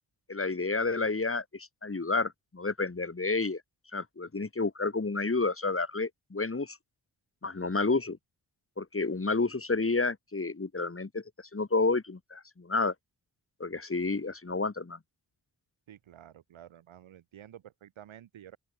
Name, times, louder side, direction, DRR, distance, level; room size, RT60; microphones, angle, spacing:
voice 1, 0.3-3.6 3.9-6.8 7.4-8.2 8.8-11.2 11.5-12.9 13.6-15.0, left 3 dB, 30° left, 3.1 m, -30 dB
voice 2, 15.9-18.6, right 11 dB, 90° right, 4.4 m, -51 dB
open air
supercardioid pair, 45°, 46 cm